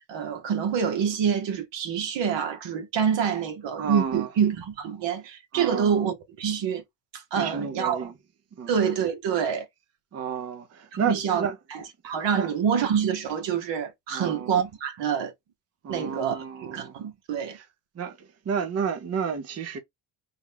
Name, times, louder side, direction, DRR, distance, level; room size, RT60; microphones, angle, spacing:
voice 1, 0.1-6.8 7.1-8.1 8.7-9.6 11.0-15.3 15.9-17.6, right 7 dB, 65° right, 1.2 m, -27 dB
voice 2, 3.8-4.3 5.5-6.0 7.4-8.1 8.6-8.7 10.1-11.6 12.3-12.5 14.1-14.6 15.8-17.0 17.4-17.6 18.0-19.8, right 6 dB, 35° right, 0.7 m, -31 dB
3.8 x 2.2 x 3.4 m
cardioid pair, 90°, 46 cm